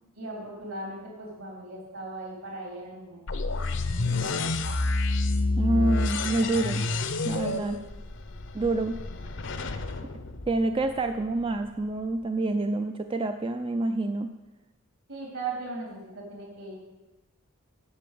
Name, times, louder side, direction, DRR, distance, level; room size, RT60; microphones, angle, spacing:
voice 1, 0.2-4.1 7.5-7.7 15.1-16.8, right 3 dB, 70° right, -2 dB, 4.4 m, -38 dB
sound 1, 3.3-11.2, left 2 dB, 55° left, 0.7 m, -29 dB
voice 2, 5.6-6.8 7.2-7.8 8.5-9.0 10.5-14.3, right 2 dB, 25° right, 7 dB, 0.4 m, -27 dB
8.7 x 6.8 x 8.5 m, 1.1 s
head